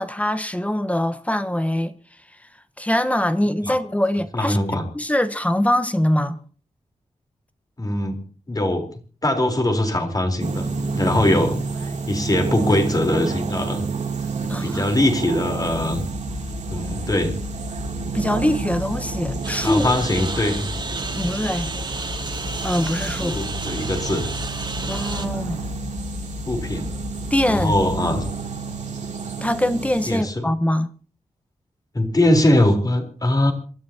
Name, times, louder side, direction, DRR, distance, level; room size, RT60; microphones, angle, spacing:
voice 1, 0.0-1.9 2.8-4.6 4.9-6.4 14.5-14.8 18.1-19.9 21.2-21.7 22.6-23.4 24.9-25.6 27.3-27.8 29.4-30.9, left 1 dB, 10° left, 1.2 m, -23 dB
voice 2, 4.3-4.8 7.8-8.2 8.5-8.9 9.2-10.7 11.0-13.8 14.6-16.0 16.7-17.4 19.6-20.7 23.2-24.3 26.5-26.9 27.5-28.3 30.1-30.5 31.9-33.5, left 1 dB, 30° left, 3.9 m, -21 dB
sound 1, 10.4-30.2, right 5 dB, 70° right, 2.9 m, -30 dB
sound 2, 15.6-28.3, left 4 dB, 65° left, 1.8 m, -34 dB
Engine, 19.4-25.3, right 3 dB, 35° right, 2.4 m, -32 dB
27.0 x 13.5 x 2.9 m
wide cardioid pair, 105°, 13 cm